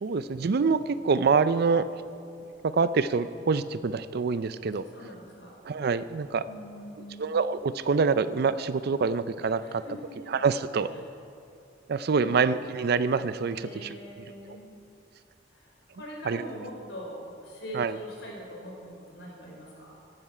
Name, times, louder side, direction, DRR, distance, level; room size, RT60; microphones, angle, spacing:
voice 1, 0.0-1.9 2.8-4.8 5.7-6.4 7.2-9.8 10.3-10.9 11.9-14.0 16.3-16.4 17.7-17.9, right 5 dB, 60° right, 14 dB, 0.4 m, -26 dB
voice 2, 4.9-5.5 6.4-7.3 9.6-10.4 10.9-11.0 12.1-12.5 13.5-14.7 15.5-20.0, equal, 85° left, -2 dB, 3.8 m, -43 dB
15.0 x 11.0 x 5.0 m, 2.6 s
head